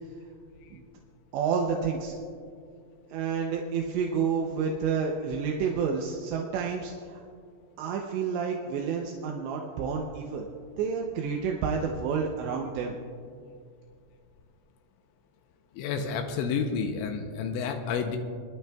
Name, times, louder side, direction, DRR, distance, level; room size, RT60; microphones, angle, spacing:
voice 1, 1.3-2.1 3.1-7.2 7.8-10.5 10.8-13.0, right 6 dB, 80° right, 1 dB, 2.5 m, -29 dB
voice 2, 15.7-18.2, left 6 dB, 85° left, 5 dB, 2.8 m, -30 dB
24.0 x 11.5 x 2.3 m, 2.2 s
omnidirectional pair, 5.9 m